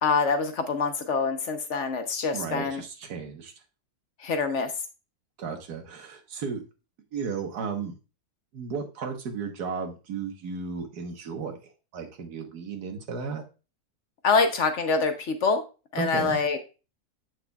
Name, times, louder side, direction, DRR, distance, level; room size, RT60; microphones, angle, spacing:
voice 1, 0.0-2.8 4.2-4.7 14.2-15.6 15.9-16.7, left 4 dB, 60° left, 7 dB, 0.9 m, -25 dB
voice 2, 2.3-3.5 5.4-6.6 7.1-7.9 8.5-13.4 16.0-16.4, right 5 dB, 90° right, 5 dB, 1.7 m, -34 dB
7.8 x 6.2 x 2.3 m, 0.32 s
omnidirectional pair, 1.6 m